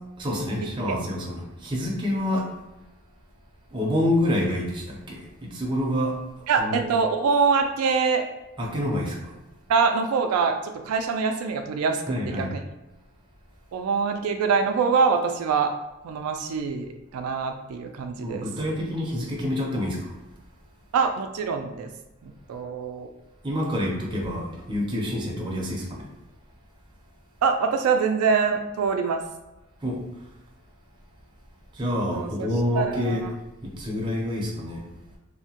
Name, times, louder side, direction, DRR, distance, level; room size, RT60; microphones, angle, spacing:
voice 1, 0.2-2.5 3.7-6.2 6.6-6.8 8.6-9.3 12.1-12.5 18.2-20.2 23.4-26.1 29.8-30.0 31.7-33.3 33.6-34.8, left 1 dB, 20° right, -2 dB, 0.5 m, -27 dB
voice 2, 6.5-8.2 9.7-12.6 13.7-15.7 16.0-18.5 20.9-21.9 22.2-23.1 27.4-29.2 32.1-32.5 32.8-33.2, right 5 dB, 85° right, 5 dB, 0.3 m, -24 dB
2.7 x 2.1 x 2.8 m, 1.0 s
head